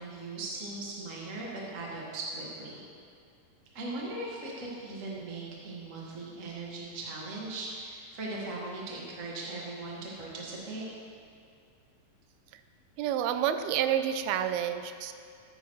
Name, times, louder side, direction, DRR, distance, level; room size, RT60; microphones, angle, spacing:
voice 1, 0.0-2.8 3.7-10.9, right 2 dB, 40° right, -4 dB, 1.1 m, -39 dB
voice 2, 13.0-15.1, right 10 dB, 90° right, 9 dB, 2.5 m, -29 dB
14.0 x 9.4 x 3.1 m, 2.4 s
omnidirectional pair, 4.3 m